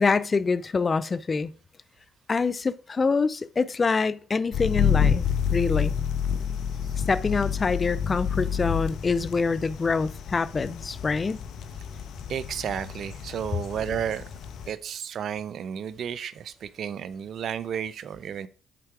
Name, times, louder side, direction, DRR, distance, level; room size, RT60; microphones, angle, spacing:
voice 1, 0.0-1.5 2.3-5.2 5.5-5.9 7.1-11.4, left 4 dB, 35° left, 0.5 m, -25 dB
sound 1, 4.5-14.7, left 7 dB, 70° left, 0.8 m, -29 dB
voice 2, 12.3-14.2 14.7-18.5, right 8 dB, 60° right, 0.5 m, -32 dB
7.5 x 4.5 x 4.8 m
hypercardioid pair, 55°, 0 cm